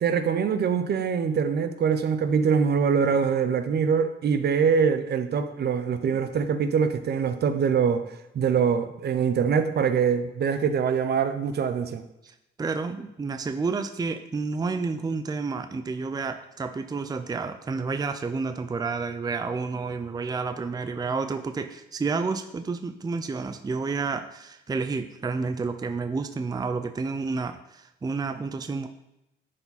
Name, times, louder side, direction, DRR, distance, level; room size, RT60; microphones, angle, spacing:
voice 1, 0.0-8.0 8.3-12.0, right 6 dB, 55° right, 10 dB, 0.8 m, -24 dB
voice 2, 12.2-28.9, right 4 dB, 20° right, 8 dB, 0.5 m, -30 dB
10.5 x 4.7 x 4.1 m, 0.88 s
cardioid pair, 90°, 20 cm